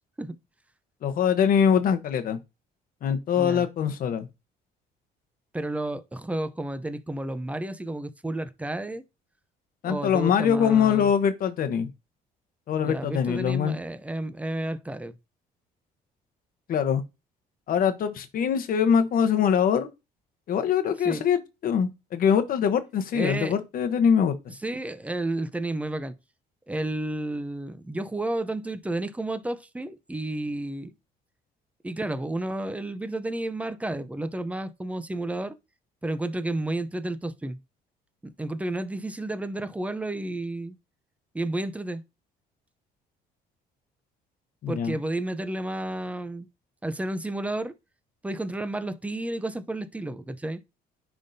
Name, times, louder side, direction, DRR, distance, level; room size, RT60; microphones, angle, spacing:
voice 1, 1.0-2.4 3.0-4.3 9.8-11.9 12.7-13.8 16.7-17.0 17.7-19.9 20.5-24.3 44.6-45.0, left 7 dB, 55° left, 1.0 m, -23 dB
voice 2, 3.4-3.7 5.5-9.1 9.8-11.1 12.8-15.2 21.0-21.2 23.1-23.6 24.6-26.1 26.7-30.9 31.8-35.5 36.0-37.6 38.2-40.7 41.3-42.0 44.7-46.5 46.8-47.7 48.2-50.6, right 1 dB, 10° right, 0.6 m, -31 dB
10.0 x 3.6 x 2.7 m
cardioid pair, 110°, 17 cm